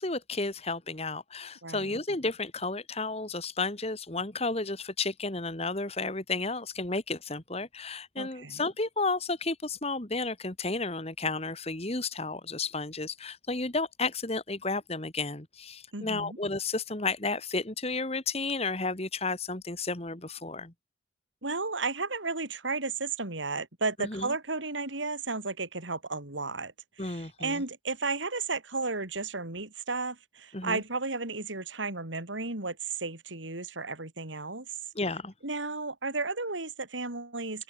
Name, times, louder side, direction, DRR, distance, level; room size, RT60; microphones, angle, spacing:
voice 1, 0.0-20.7 24.0-24.3 27.0-27.6 30.5-30.8 35.0-35.3, left 3 dB, 35° left, 2.1 m, -32 dB
voice 2, 1.6-2.0 8.2-8.6 15.9-16.4 21.4-34.7 35.4-37.6, right 3 dB, 80° right, 4.4 m, -33 dB
open air
head